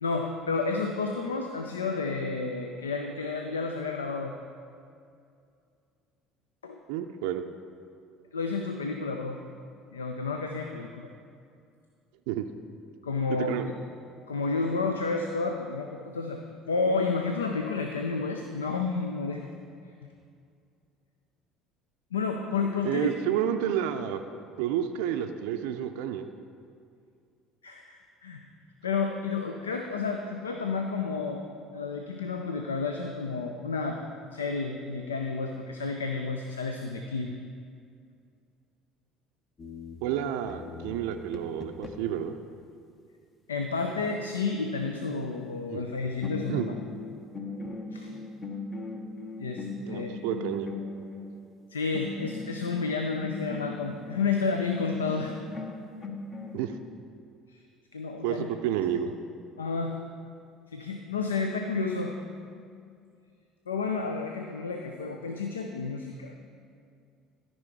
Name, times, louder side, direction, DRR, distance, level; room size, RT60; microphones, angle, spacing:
voice 1, 0.0-4.4 6.6-6.8 8.3-9.4 9.9-11.1 13.0-13.5 14.3-19.5 22.1-23.1 27.6-28.4 28.8-31.4 31.7-34.0 34.3-37.4 43.5-46.7 47.9-48.1 49.4-49.6 49.9-50.2 51.7-55.4 57.5-57.6 57.9-58.5 59.6-60.0 60.7-62.2 63.7-66.4, left 4 dB, 85° left, 4 dB, 0.4 m, -31 dB
voice 2, 6.9-7.4 12.3-12.5 13.3-13.7 22.8-24.2 24.6-26.3 40.0-42.4 45.7-45.8 46.5-46.7 49.8-50.7 56.5-56.8 58.2-59.1, right 10 dB, 70° right, 6 dB, 0.4 m, -30 dB
sound 1, 39.6-42.3 45.8-46.0 46.2-51.4 51.9-54.2 54.8-56.6, left 3 dB, 35° left, 1.0 m, -39 dB
13.0 x 5.4 x 4.6 m, 2.4 s
hypercardioid pair, 60°, 0 cm